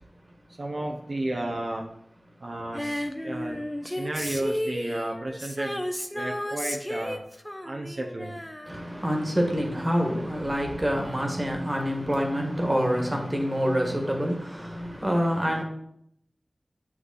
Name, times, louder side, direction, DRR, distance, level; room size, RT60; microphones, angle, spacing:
voice 1, 0.6-1.9 2.4-5.8 6.1-7.2 7.6-8.4, right 1 dB, 65° right, 0.9 m, -33 dB
Female singing, 2.7-9.4 9.7-9.8, left 1 dB, 10° left, 0.7 m, -33 dB
voice 2, 8.6-15.6, equal, 25° right, 1.6 m, -26 dB
7.7 x 6.1 x 4.0 m
wide cardioid pair, 75°, 0 cm